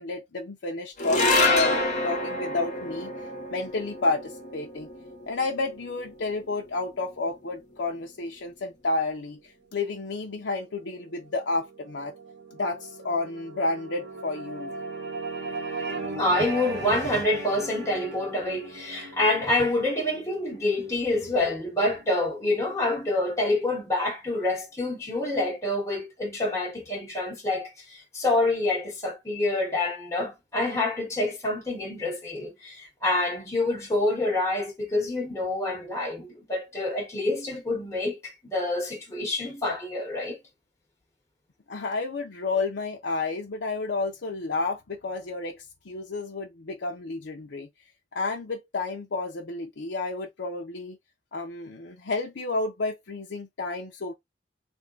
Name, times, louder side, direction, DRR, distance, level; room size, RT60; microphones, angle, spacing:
voice 1, 0.0-3.1 3.5-4.9 5.3-12.1 12.5-14.7 41.7-47.7 48.1-51.0 51.3-54.1, left 3 dB, 90° left, 0.6 m, -31 dB
sound 1, 1.0-7.5, left 2 dB, 45° left, 1.1 m, -28 dB
sound 2, 10.2-22.8, right 3 dB, 90° right, 1.2 m, -39 dB
voice 2, 16.2-40.4, left 2 dB, 15° left, 1.2 m, -27 dB
3.5 x 2.2 x 3.8 m
head